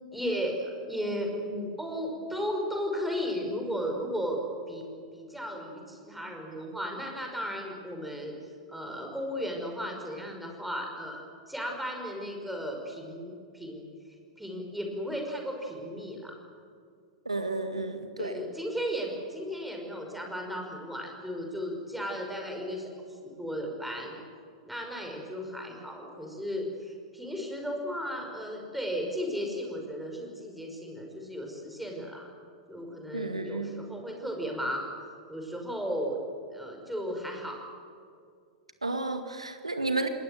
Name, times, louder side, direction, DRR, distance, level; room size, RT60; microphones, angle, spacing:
voice 1, 0.1-4.4 4.7-8.4 8.7-13.8 14.4-16.4 18.2-22.9 23.2-24.2 24.6-32.3 32.7-34.9 35.3-36.2 36.5-37.6, equal, 5° right, 1 dB, 5.5 m, -35 dB
voice 2, 17.3-18.4 33.1-33.7 38.8-40.1, right 2 dB, 85° right, 7 dB, 2.1 m, -32 dB
28.0 x 20.0 x 7.8 m, 2.3 s
figure-of-eight pair, 95°, 3 cm